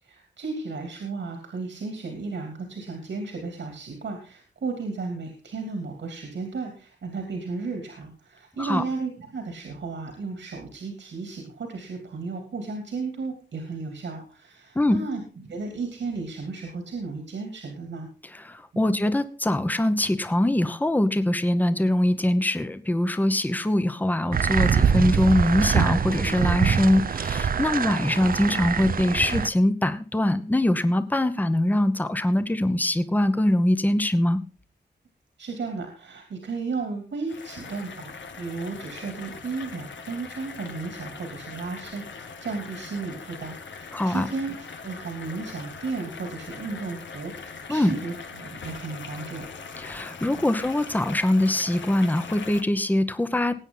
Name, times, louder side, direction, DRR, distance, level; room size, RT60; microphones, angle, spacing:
voice 1, 0.0-18.1 18.7-18.8 35.4-49.5 50.3-50.4, right 4 dB, 80° right, 3 dB, 3.0 m, -34 dB
voice 2, 18.3-34.4 43.9-44.3 47.7-47.9 49.8-53.5, left 1 dB, 10° left, 11 dB, 0.9 m, -23 dB
sound 1, 24.3-29.5, right 7 dB, 50° right, 0.6 m, -24 dB
sound 2, 37.3-52.6, left 5 dB, 80° left, 1.7 m, -41 dB
19.5 x 9.0 x 3.9 m, 0.37 s
wide cardioid pair, 120°, 19 cm